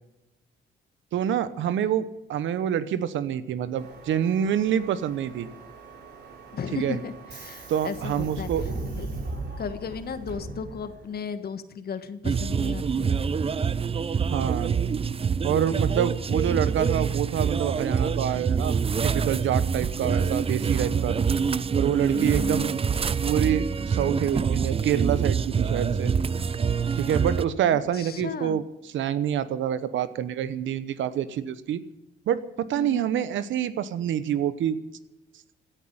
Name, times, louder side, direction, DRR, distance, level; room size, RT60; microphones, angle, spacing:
voice 1, 1.1-5.5 6.7-7.0 7.7-8.6 14.3-14.7 15.4-18.7 19.0-21.2 21.7-22.7 23.2-26.1 26.9-31.8 32.3-34.8, right 10 dB, 75° right, 14 dB, 1.0 m, -27 dB
Subway metro underground, 3.8-11.2, right 3 dB, 60° right, 4.1 m, -38 dB
voice 2, 6.5-8.5 8.9-9.1 9.6-13.2 22.1-22.7 27.7-28.6 32.7-33.1, left 6 dB, 50° left, 10 dB, 1.5 m, -35 dB
sound 1, 12.2-27.5, right 6 dB, 30° right, 0.6 m, -26 dB
16.5 x 10.0 x 8.7 m, 0.96 s
cardioid pair, 90°, 20 cm